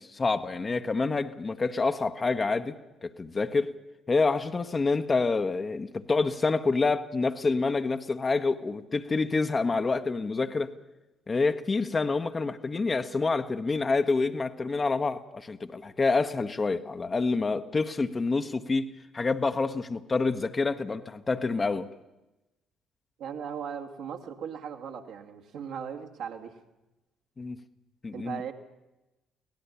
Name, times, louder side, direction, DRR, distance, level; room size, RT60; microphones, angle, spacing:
voice 1, 0.0-2.8 3.0-3.8 4.1-10.7 11.3-21.9 27.4-27.6 28.0-28.4, left 3 dB, 30° left, 1.2 m, -27 dB
voice 2, 23.2-26.6 28.1-28.5, right 7 dB, 60° right, 1.9 m, -38 dB
24.0 x 18.0 x 7.1 m
figure-of-eight pair, 45°, 0 cm